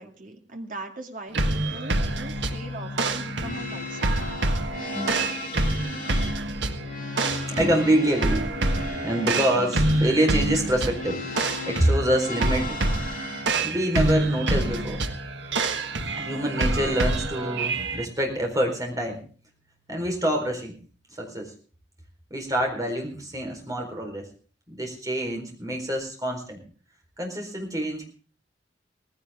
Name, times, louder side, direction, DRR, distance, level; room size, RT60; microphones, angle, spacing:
voice 1, 0.0-4.1, right 2 dB, 50° right, 3 dB, 2.5 m, -40 dB
sound 1, 1.3-18.0, right 2 dB, 80° right, 1.6 m, -27 dB
sound 2, 2.7-2.8 3.2-4.5 4.9-6.9 7.6-9.0 9.5-13.5 14.2-20.7, left 1 dB, 15° left, 4.7 m, -46 dB
sound 3, 3.2-13.5, left 3 dB, 50° left, 4.1 m, -37 dB
voice 2, 7.5-8.5 9.0-12.8 13.6-15.0 16.2-19.2 19.9-20.7 21.2-21.5 22.3-24.3 24.7-26.6 27.2-28.1, right 1 dB, 20° right, 2 dB, 4.3 m, -26 dB
18.0 x 16.0 x 3.6 m, 0.40 s
head